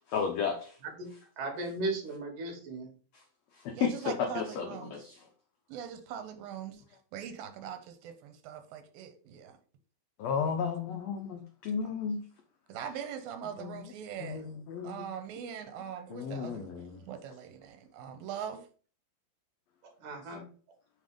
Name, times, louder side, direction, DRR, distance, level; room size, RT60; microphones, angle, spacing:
voice 1, 0.1-0.8 1.1-1.2 3.1-3.2 3.5-5.3 10.2-12.2 13.4-13.9 14.2-15.0 16.1-17.1 20.3-20.4, left 6 dB, 85° left, 5 dB, 1.5 m, -34 dB
voice 2, 1.4-2.9 20.0-20.4, right 2 dB, 70° right, 3 dB, 3.2 m, -36 dB
voice 3, 3.7-4.9 5.7-6.8 7.1-9.5 11.8-11.9 12.7-14.4 14.8-16.7 17.0-18.6, right 8 dB, 85° right, 8 dB, 2.7 m, -41 dB
7.3 x 3.5 x 5.1 m, 0.40 s
omnidirectional pair, 4.0 m